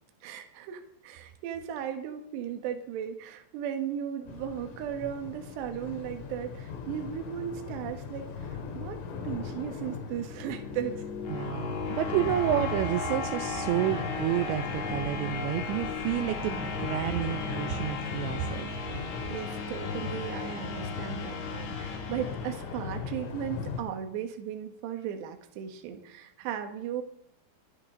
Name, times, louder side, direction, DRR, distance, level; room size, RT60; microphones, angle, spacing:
voice 1, 0.2-9.0 9.2-11.0 19.3-27.0, right 9 dB, 65° right, 5 dB, 3.4 m, -36 dB
sound 1, 4.3-23.8, left 5 dB, 85° left, 4.6 m, -39 dB
sound 2, 10.1-23.1, left 4 dB, 55° left, 2.3 m, -36 dB
voice 2, 11.3-18.7, right 13 dB, 85° right, 9 dB, 2.6 m, -30 dB
24.5 x 11.5 x 3.9 m, 0.67 s
omnidirectional pair, 5.9 m